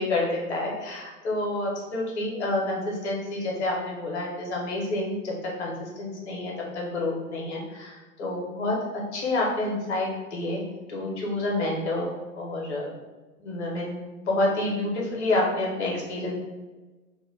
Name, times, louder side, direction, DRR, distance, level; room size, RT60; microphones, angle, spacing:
voice 1, 0.0-5.3 5.6-8.7 9.1-10.6 10.9-12.9 13.4-14.0 14.3-16.4, left 2 dB, 50° left, -2 dB, 0.9 m, -28 dB
2.4 x 2.1 x 3.4 m, 1.2 s
figure-of-eight pair, 110°, 43 cm